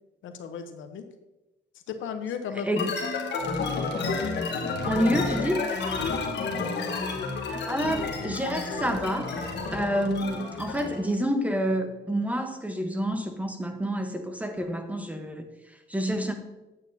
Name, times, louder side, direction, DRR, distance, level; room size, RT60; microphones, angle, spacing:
voice 1, 0.2-1.0 1.9-2.9 6.0-6.2, left 7 dB, 80° left, 7 dB, 0.8 m, -35 dB
voice 2, 2.6-3.0 4.8-5.7 7.5-9.3 9.7-16.3, equal, 5° right, 6 dB, 1.0 m, -28 dB
sound 1, 2.8-11.0, left 4 dB, 60° left, 1.3 m, -30 dB
8.7 x 8.3 x 2.7 m, 1.0 s
cardioid pair, 90°, 20 cm